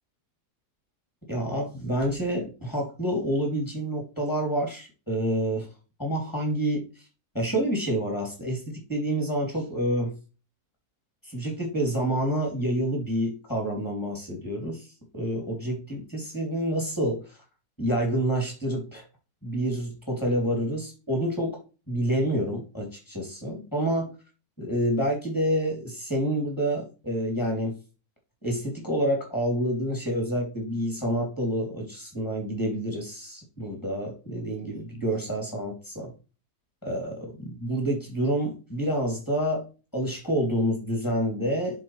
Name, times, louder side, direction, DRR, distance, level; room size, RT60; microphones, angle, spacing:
voice 1, 1.3-5.7 6.0-7.0 7.3-10.2 11.2-14.9 15.1-17.4 17.8-19.0 19.4-21.6 21.9-24.1 24.6-27.8 28.4-36.1 36.8-39.6 39.9-41.8, right 1 dB, 10° left, 0 dB, 2.8 m, -28 dB
10.5 x 4.1 x 3.2 m, 0.33 s
omnidirectional pair, 1.6 m